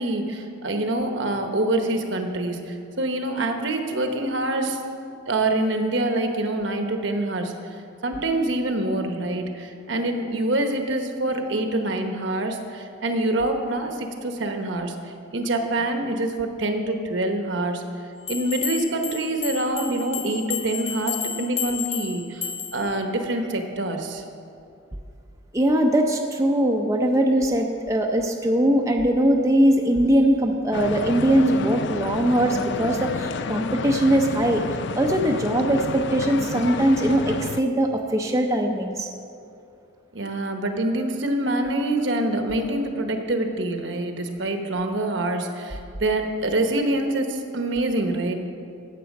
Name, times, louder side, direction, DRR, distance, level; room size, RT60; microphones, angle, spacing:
voice 1, 0.0-4.8 5.3-7.5 8.0-14.9 15.3-17.8 18.3-22.4 22.7-24.2 40.1-48.3, right 1 dB, 65° right, 5 dB, 1.1 m, -25 dB
sound 1, 18.3-22.9, left 8 dB, 30° left, 0.9 m, -32 dB
voice 2, 25.5-34.6 35.0-39.1, right 1 dB, 15° right, 2 dB, 0.6 m, -21 dB
sound 2, 30.7-37.6, left 4 dB, 60° left, 0.4 m, -30 dB
15.5 x 6.9 x 5.3 m, 2.5 s
head